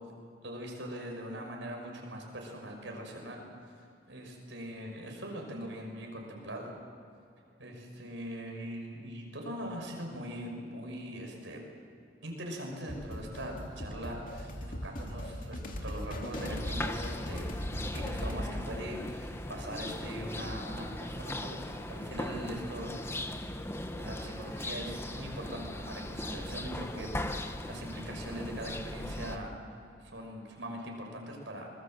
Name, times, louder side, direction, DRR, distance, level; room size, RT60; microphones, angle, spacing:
voice 1, 0.4-3.5 3.8-6.7 7.6-11.6 12.2-17.5 17.9-22.9 24.0-29.5 30.0-31.7, equal, 80° right, 1 dB, 6.1 m, -41 dB
sound 1, 12.9-18.5, equal, 50° left, 2.5 m, -39 dB
sound 2, 16.3-29.4, left 1 dB, 15° left, 1.2 m, -38 dB
27.0 x 21.5 x 7.8 m, 2.6 s
head